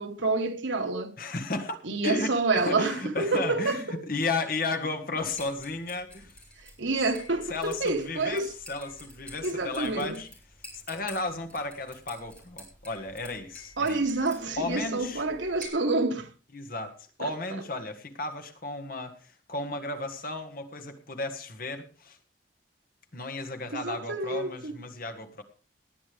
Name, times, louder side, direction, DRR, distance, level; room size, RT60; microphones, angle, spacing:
voice 1, 0.0-1.1 1.8-4.0 6.8-8.5 9.4-10.2 13.8-16.3 17.2-17.3 23.7-24.7, right 3 dB, 80° right, 1.6 m, -28 dB
voice 2, 1.2-1.8 2.0-6.4 7.5-10.3 10.7-14.0 14.6-15.3 16.5-22.2 23.1-25.4, left 3 dB, 50° left, 1.8 m, -34 dB
sound 1, 5.2-15.7, equal, 5° left, 4.3 m, -50 dB
19.0 x 9.8 x 3.5 m
head